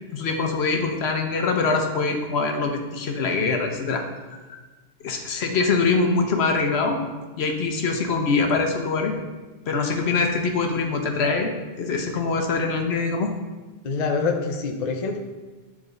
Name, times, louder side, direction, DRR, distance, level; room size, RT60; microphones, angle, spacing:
voice 1, 0.1-4.0 5.0-7.0 7.4-9.1 9.7-11.5 11.8-13.3, left 4 dB, 75° left, 4 dB, 1.0 m, -23 dB
voice 2, 13.8-15.2, left 4 dB, 45° left, 3 dB, 0.7 m, -25 dB
9.9 x 3.6 x 3.9 m, 1.2 s
omnidirectional pair, 1.1 m